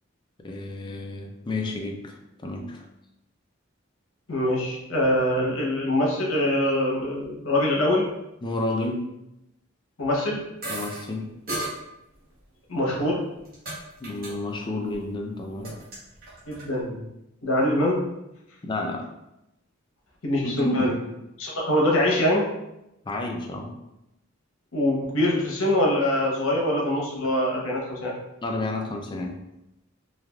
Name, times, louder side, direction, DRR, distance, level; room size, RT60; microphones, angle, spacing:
voice 1, 0.4-2.9 8.4-9.1 10.7-11.3 14.0-15.8 18.6-19.1 20.4-20.9 23.1-23.7 28.4-29.4, left 2 dB, 25° left, 2 dB, 0.3 m, -30 dB
voice 2, 4.3-8.1 10.0-10.4 12.7-13.2 16.5-17.0 17.4-18.0 20.2-20.9 21.4-22.5 24.7-28.1, left 1 dB, 85° left, -3 dB, 0.8 m, -24 dB
sound 1, 10.6-11.0 11.5-11.7 12.7-13.8 14.0-14.3 14.6-15.1 15.4-16.7, right 2 dB, 45° right, 0.9 m, -34 dB
3.2 x 2.4 x 2.3 m, 0.89 s
head